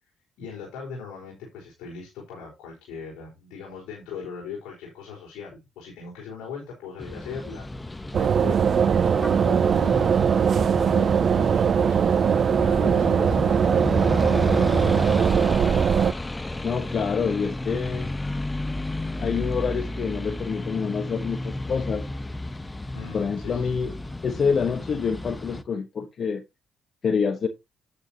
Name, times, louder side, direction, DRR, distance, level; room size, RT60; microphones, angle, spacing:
voice 1, 0.4-7.7 8.2-10.1 10.4-14.8 22.9-23.8, left 5 dB, 85° left, 4.2 m, -39 dB
sound 1, 7.0-25.6, left 2 dB, 20° left, 0.9 m, -32 dB
sound 2, 8.1-16.1, right 7 dB, 55° right, 0.4 m, -21 dB
voice 2, 16.6-18.1 19.2-22.0 23.1-23.9 24.2-26.4 27.0-27.5, left 6 dB, 55° left, 1.1 m, -27 dB
9.7 x 8.8 x 2.8 m
supercardioid pair, 65°, 0 cm